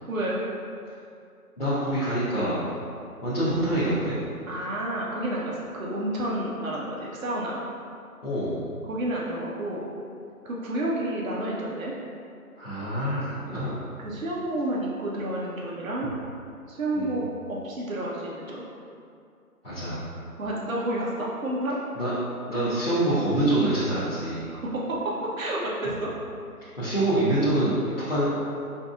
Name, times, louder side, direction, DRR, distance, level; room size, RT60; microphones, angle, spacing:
voice 1, 0.1-0.4 4.5-7.6 8.9-9.9 10.4-11.9 14.0-16.1 16.7-18.7 20.4-21.8 24.5-26.1, right 1 dB, 60° right, -4 dB, 0.7 m, -30 dB
voice 2, 1.6-2.6 3.2-4.2 8.2-8.7 12.6-13.9 16.9-17.1 19.6-20.1 21.9-22.1 22.5-24.5 26.8-28.2, right 1 dB, 40° left, -13 dB, 0.6 m, -26 dB
3.9 x 2.6 x 2.3 m, 2.4 s
figure-of-eight pair, 160°, 46 cm